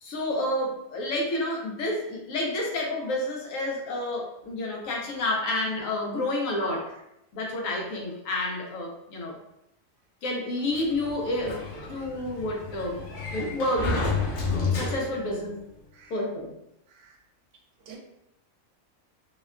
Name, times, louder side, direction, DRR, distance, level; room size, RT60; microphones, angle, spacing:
voice 1, 0.0-6.9 7.3-9.4 10.2-11.6 11.9-13.0 13.3-14.2 14.5-15.5 16.1-16.5, left 1 dB, 90° left, -1 dB, 1.1 m, -29 dB
Sliding door, 10.7-15.4, left 3 dB, 75° left, 0.9 m, -31 dB
voice 2, 12.0-12.1 13.1-13.2 15.9-16.1 16.9-17.2 17.9-18.0, right 7 dB, 75° right, 0 dB, 0.9 m, -49 dB
2.8 x 2.2 x 2.3 m, 0.82 s
omnidirectional pair, 1.3 m